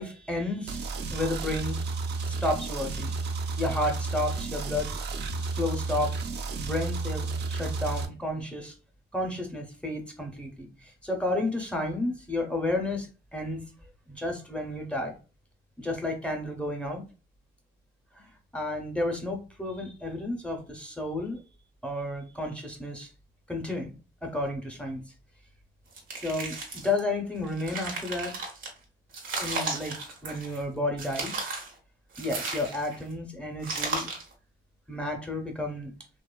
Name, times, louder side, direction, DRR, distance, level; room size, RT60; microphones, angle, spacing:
voice 1, 0.0-4.9 5.4-6.1 6.6-8.7 9.1-13.6 14.1-15.2 15.8-17.0 18.1-21.4 21.8-23.1 23.5-23.9 24.2-25.0 26.2-28.4 29.3-31.3 32.2-34.1 34.9-35.9, left 2 dB, 5° left, 0.5 m, -32 dB
sound 1, 0.7-8.0, right 3 dB, 60° right, 0.4 m, -32 dB
sound 2, 25.9-27.0 27.4-28.7 29.1-30.6 31.0-31.7 32.1-33.0 33.6-34.3, right 3 dB, 80° right, 0.8 m, -35 dB
2.7 x 2.2 x 2.2 m
cardioid pair, 90°, 20 cm